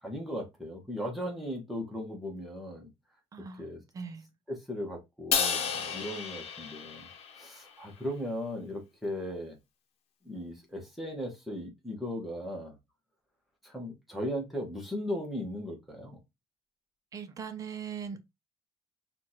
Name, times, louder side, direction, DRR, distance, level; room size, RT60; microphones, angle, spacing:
voice 1, 0.0-2.9 3.6-3.8 4.5-7.1 7.4-9.5 10.2-12.7 13.6-16.2, equal, ahead, 1.3 m, -37 dB
voice 2, 3.3-3.6 3.9-4.3 17.1-18.2, right 6 dB, 35° right, 0.7 m, -40 dB
Crash cymbal, 5.3-7.7, left 6 dB, 85° left, 0.8 m, -32 dB
6.1 x 2.5 x 2.9 m
cardioid pair, 160°, 10 cm